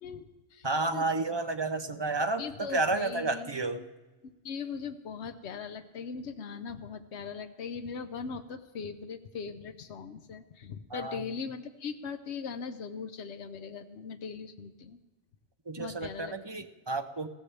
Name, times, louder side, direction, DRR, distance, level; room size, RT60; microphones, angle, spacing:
voice 1, 0.0-1.3 2.4-3.6 4.2-15.0 15.8-16.6, left 5 dB, 85° left, 8 dB, 1.1 m, -40 dB
voice 2, 0.6-2.4 2.7-3.8 10.9-11.2 15.7-17.3, right 3 dB, 30° right, 7 dB, 0.7 m, -31 dB
20.5 x 15.0 x 3.3 m, 1.2 s
omnidirectional pair, 1.1 m